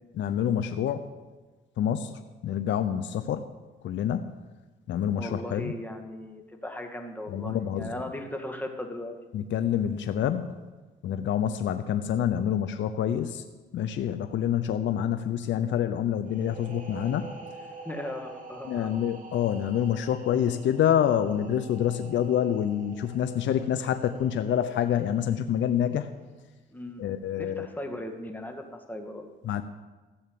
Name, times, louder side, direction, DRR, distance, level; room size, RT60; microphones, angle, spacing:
voice 1, 0.1-1.1 1.8-2.1 2.4-3.4 3.8-4.3 4.9-5.7 7.3-7.9 9.3-10.6 11.0-13.4 13.7-17.3 18.7-26.1 27.0-27.7 29.4-29.6, left 9 dB, 70° left, 9 dB, 0.7 m, -27 dB
voice 2, 5.2-9.1 17.8-18.9 26.7-27.0 27.4-29.3, left 1 dB, 10° left, 3 dB, 2.1 m, -37 dB
sound 1, 16.2-25.7, right 4 dB, 40° right, 2.8 m, -47 dB
14.5 x 7.2 x 8.6 m, 1.2 s
cardioid pair, 90°, 20 cm